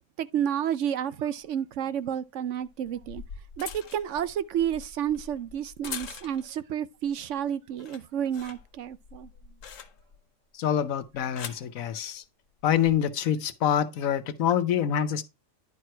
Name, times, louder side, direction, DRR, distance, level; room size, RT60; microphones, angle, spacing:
voice 1, 0.2-3.2 3.6-9.3, right 9 dB, 70° right, 0.9 m, -30 dB
sound 1, 1.4-1.5 2.7-6.6 7.1-7.4 7.7-10.3 11.0-11.7 12.6-12.9, left 6 dB, 70° left, 1.3 m, -43 dB
voice 2, 10.5-12.2 12.6-15.2, left 9 dB, 90° left, 1.2 m, -26 dB
10.5 x 4.7 x 4.5 m
omnidirectional pair, 1.4 m